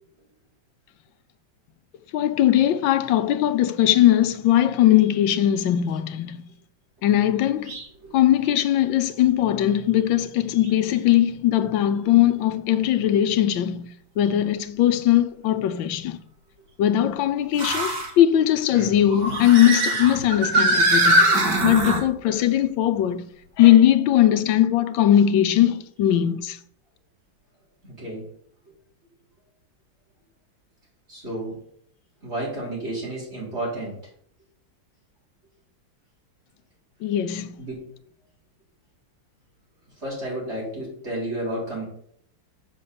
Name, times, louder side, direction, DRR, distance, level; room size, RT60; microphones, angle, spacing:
voice 1, 2.1-6.4 7.0-7.7 8.1-13.9 14.2-16.2 16.8-21.3 21.6-23.2 23.6-26.6 37.0-37.5, left 11 dB, 85° left, 1.5 m, -20 dB
sound 1, 7.7-7.9 8.5-8.6 10.6-10.7 14.3-14.4 17.6-18.1 19.1-22.0, right 1 dB, 65° right, 2.3 m, -21 dB
voice 2, 27.8-28.2 31.1-31.6 32.2-33.9 37.6-37.9 40.0-41.8, right 1 dB, 35° right, 4.5 m, -31 dB
7.5 x 5.3 x 6.9 m
omnidirectional pair, 2.0 m